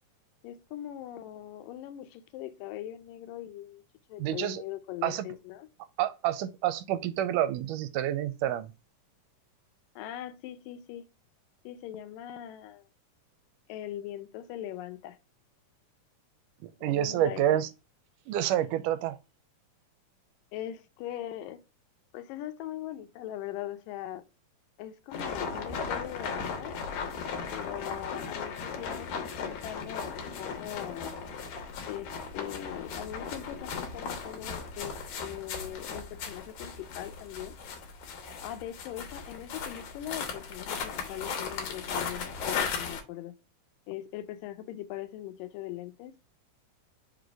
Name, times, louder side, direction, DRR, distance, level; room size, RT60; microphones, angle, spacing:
voice 1, 0.4-3.8 4.1-5.7 10.0-11.1 11.6-12.9 13.7-15.2 16.8-17.6 20.5-21.6 22.1-24.2 24.8-26.8 27.5-31.2 31.9-34.9 35.2-37.6 38.4-43.3 43.9-46.2, left 12 dB, 85° left, 2.3 m, -41 dB
voice 2, 4.2-4.6 5.0-5.3 6.0-8.7 16.8-17.7 18.3-19.2, right 12 dB, 80° right, 2.1 m, -28 dB
sound 1, 25.1-43.0, left 5 dB, 70° left, 2.5 m, -37 dB
5.2 x 3.9 x 4.7 m
omnidirectional pair, 3.8 m